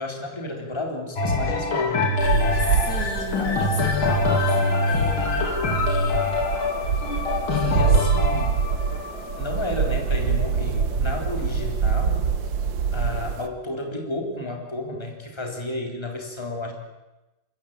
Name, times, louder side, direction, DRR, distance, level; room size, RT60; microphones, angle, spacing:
voice 1, 0.0-3.8 7.5-8.6 9.4-12.3 12.9-16.7, left 2 dB, 10° left, 1 dB, 3.5 m, -32 dB
sound 1, 1.2-10.9 11.6-11.7, left 3 dB, 80° left, 3.5 m, -24 dB
sound 2, 2.2-13.5, right 6 dB, 65° right, 1.9 m, -25 dB
voice 2, 2.6-5.4 7.5-8.2, left 1 dB, 50° left, 2 dB, 3.2 m, -35 dB
24.5 x 14.5 x 8.8 m, 1.0 s
omnidirectional pair, 2.3 m